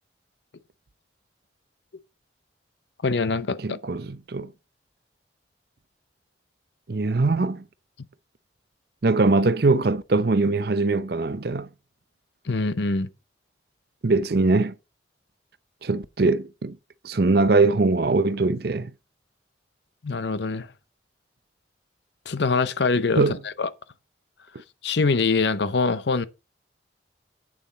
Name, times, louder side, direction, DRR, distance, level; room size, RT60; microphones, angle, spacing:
voice 1, 3.0-3.8 12.5-13.1 20.0-20.7 22.3-23.2 23.6-23.7 24.8-26.3, left 4 dB, 65° left, 0.7 m, -23 dB
voice 2, 3.6-4.5 6.9-7.6 9.0-11.7 14.0-14.7 15.8-16.8 17.0-18.9 23.2-23.4, right 3 dB, 55° right, 0.6 m, -22 dB
8.8 x 7.2 x 4.1 m
head